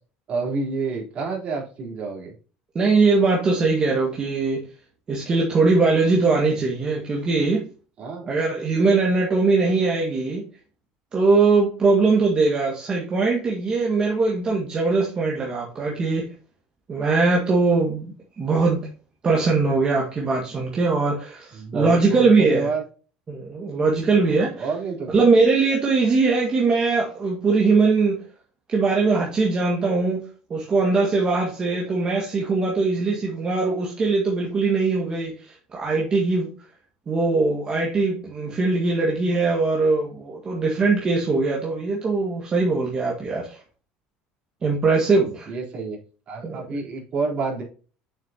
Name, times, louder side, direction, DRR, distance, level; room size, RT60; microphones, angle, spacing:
voice 1, 0.3-2.3 8.0-8.3 21.5-22.8 24.3-25.3 45.5-46.0 46.3-47.6, right 4 dB, 45° right, 3.7 m, -29 dB
voice 2, 2.8-4.6 5.1-7.6 8.3-10.4 11.1-16.3 16.9-18.9 19.2-22.7 23.3-24.7 25.1-28.2 28.7-30.2 30.5-36.5 37.1-43.6 44.6-45.5 46.4-46.6, right 3 dB, 30° right, 1.8 m, -21 dB
7.5 x 6.6 x 2.8 m
cardioid pair, 120°, 3 cm